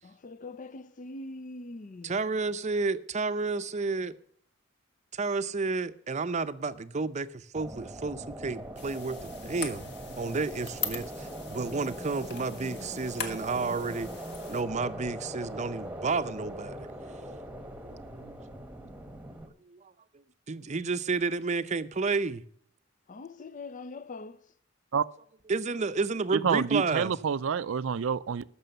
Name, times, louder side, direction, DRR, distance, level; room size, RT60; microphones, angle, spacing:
voice 1, 0.0-2.2 23.1-24.5, left 2 dB, 40° left, 0.5 m, -43 dB
voice 2, 2.0-4.1 5.1-9.8 10.2-14.1 14.5-16.9 19.7-19.8 20.5-22.4 25.5-27.1, right 4 dB, 35° right, 0.6 m, -31 dB
sound 1, 7.5-19.5, right 1 dB, 10° right, 1.1 m, -41 dB
sound 2, 8.8-14.6, left 5 dB, 60° left, 1.7 m, -41 dB
voice 3, 26.3-28.4, right 6 dB, 75° right, 0.4 m, -28 dB
13.5 x 6.2 x 6.8 m
head